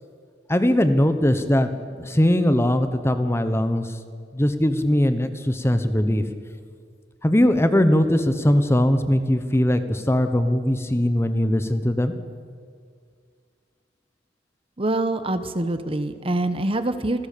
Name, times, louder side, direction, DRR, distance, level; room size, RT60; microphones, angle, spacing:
voice 1, 0.5-4.0 4.3-6.2 7.2-12.1, left 1 dB, 15° left, 10 dB, 1.1 m, -20 dB
voice 2, 14.8-17.3, right 2 dB, 30° right, 11 dB, 1.0 m, -25 dB
27.0 x 16.0 x 6.8 m, 2.1 s
head